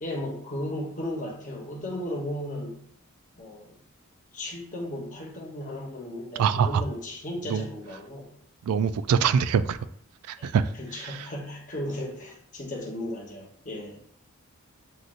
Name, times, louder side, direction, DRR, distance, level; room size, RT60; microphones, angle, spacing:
voice 1, 0.0-2.8 3.4-3.8 4.3-8.3 10.4-10.5 10.8-14.0, left 1 dB, 35° left, -1 dB, 1.0 m, -35 dB
voice 2, 6.4-6.8 7.5-7.7 8.6-9.8 10.3-10.7 11.0-11.3, right 7 dB, 85° right, 13 dB, 0.3 m, -24 dB
7.5 x 2.6 x 2.5 m, 0.63 s
head